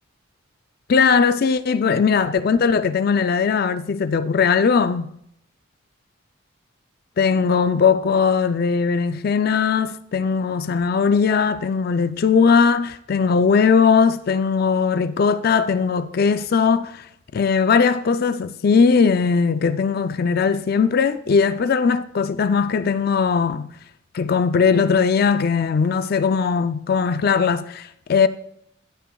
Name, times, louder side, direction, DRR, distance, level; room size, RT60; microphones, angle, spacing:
voice 1, 0.9-5.1 7.2-17.1 17.3-23.7 24.1-28.3, left 5 dB, 45° left, 0.4 m, -19 dB
16.5 x 5.9 x 2.3 m
head